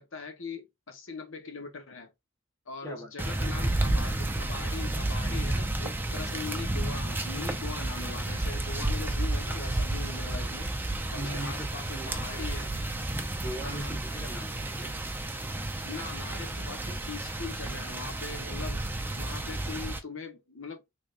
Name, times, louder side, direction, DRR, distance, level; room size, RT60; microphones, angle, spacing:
voice 1, 0.0-2.1 2.7-10.7 11.1-12.7 13.6-14.0 15.8-20.9, left 4 dB, 70° left, 1.1 m, -41 dB
sound 1, 3.2-20.0, right 1 dB, 10° right, 0.6 m, -31 dB
voice 2, 11.1-12.4 13.3-15.0, right 1 dB, 15° left, 1.2 m, -40 dB
3.6 x 3.3 x 2.5 m
head